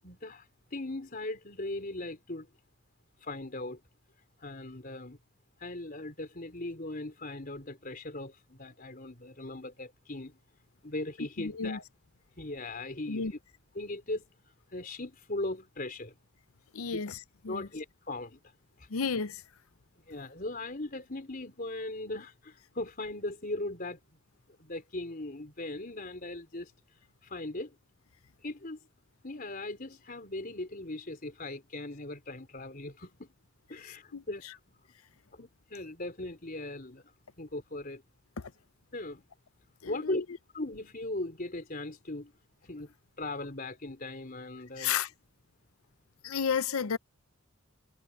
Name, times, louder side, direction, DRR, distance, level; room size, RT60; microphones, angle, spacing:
voice 1, 0.0-2.5 3.2-3.8 4.4-5.2 5.6-10.4 10.8-11.8 12.4-13.3 13.8-14.3 14.7-16.1 16.9-17.0 17.5-18.4 20.1-24.0 24.6-26.7 27.2-27.8 28.4-28.8 29.2-33.3 33.7-34.6 35.3-37.0 37.4-38.0 38.9-39.2 39.9-40.2 40.5-42.3 42.6-45.0, left 2 dB, 40° left, 3.8 m, -39 dB
voice 2, 11.4-11.8 13.1-13.3 16.7-17.7 18.9-19.4 33.8-34.5 38.4-38.5 39.8-40.2 44.8-45.1 46.2-47.0, left 6 dB, 80° left, 0.7 m, -33 dB
head